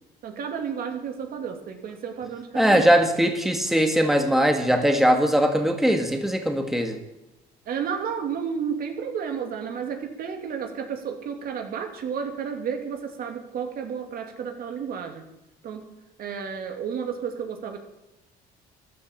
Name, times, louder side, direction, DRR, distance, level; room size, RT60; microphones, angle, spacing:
voice 1, 0.2-3.0 7.6-15.3 15.6-15.9 16.2-17.8, right 7 dB, 60° right, 5 dB, 2.8 m, -32 dB
voice 2, 2.5-7.0, equal, ahead, 5 dB, 1.9 m, -20 dB
14.0 x 11.5 x 7.4 m, 0.98 s
cardioid pair, 110°, 17 cm